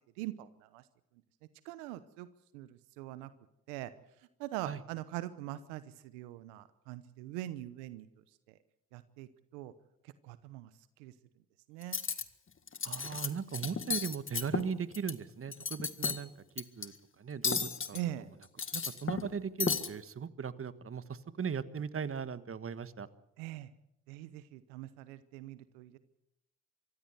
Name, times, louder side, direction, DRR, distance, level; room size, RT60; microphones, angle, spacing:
voice 1, 0.2-0.8 1.6-2.3 2.5-3.3 3.7-3.9 4.4-8.1 8.5-8.6 8.9-9.7 10.0-10.7 11.0-11.1 11.7-12.0 17.9-18.3 23.4-23.7 24.1-26.0, right 14 dB, 90° right, 15 dB, 1.0 m, -42 dB
Cutlery silverware, 11.8-12.2 12.7-13.3 13.5-15.1 15.5-16.2 16.6-16.9 17.4-18.0 18.4-19.3 19.6-19.9, left 5 dB, 35° left, 1.9 m, -34 dB
voice 2, 12.8-18.0 18.7-23.1, right 6 dB, 40° right, 14 dB, 1.5 m, -38 dB
24.5 x 15.5 x 8.1 m, 0.83 s
hypercardioid pair, 55°, 35 cm